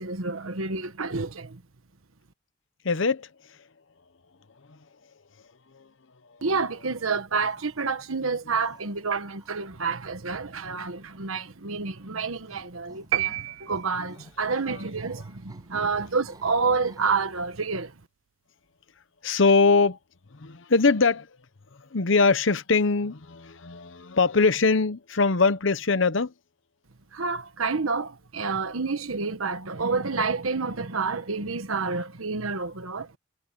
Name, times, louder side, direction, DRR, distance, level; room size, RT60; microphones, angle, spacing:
voice 1, 0.0-1.6 6.4-17.9 27.1-33.1, right 4 dB, 85° right, 1.3 m, -29 dB
voice 2, 2.8-3.3 19.2-20.0 20.4-21.3 21.9-26.3, left 4 dB, 65° left, 0.9 m, -22 dB
sound 1, 6.4-7.0 7.3-8.1 8.5-9.7 12.5-17.2, right 2 dB, 20° right, 6.5 m, -54 dB
sound 2, 13.1-14.4, right 15 dB, 70° right, 0.3 m, -29 dB
head